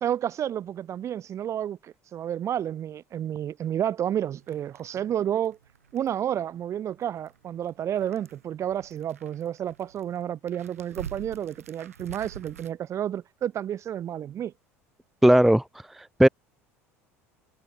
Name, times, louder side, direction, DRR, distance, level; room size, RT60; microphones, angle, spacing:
voice 1, 0.0-5.6 5.9-14.5, right 10 dB, 40° right, 1.5 m, -30 dB
sound 1, 4.4-12.7, right 8 dB, 80° right, 1.7 m, -47 dB
voice 2, 15.2-15.6 15.9-16.3, right 1 dB, 5° right, 0.3 m, -17 dB
figure-of-eight pair, 65°, 8 cm